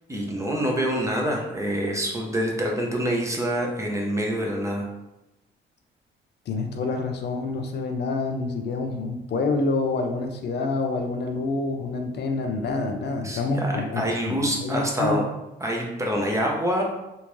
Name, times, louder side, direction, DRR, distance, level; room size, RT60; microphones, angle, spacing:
voice 1, 0.1-4.9 13.2-15.2 15.6-16.8, equal, 15° right, -1 dB, 0.8 m, -26 dB
voice 2, 6.5-15.2, left 3 dB, 60° left, 4 dB, 0.5 m, -27 dB
3.6 x 2.6 x 3.1 m, 0.94 s
cardioid pair, 90°, 20 cm